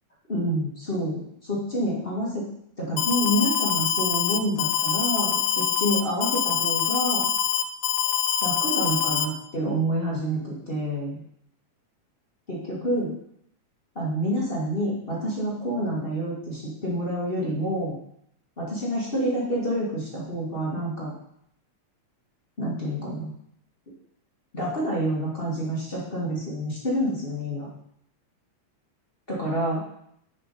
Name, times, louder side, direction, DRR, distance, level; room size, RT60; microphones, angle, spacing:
voice 1, 0.3-2.5 2.8-7.3 8.4-11.2 12.5-13.1 13.9-18.0 18.6-21.1 22.6-23.3 24.5-27.7 29.3-29.8, equal, 25° left, -6 dB, 1.2 m, -28 dB
Alarm, 3.0-9.3, left 9 dB, 80° left, 1.7 m, -24 dB
6.5 x 4.8 x 5.2 m, 0.72 s
omnidirectional pair, 3.4 m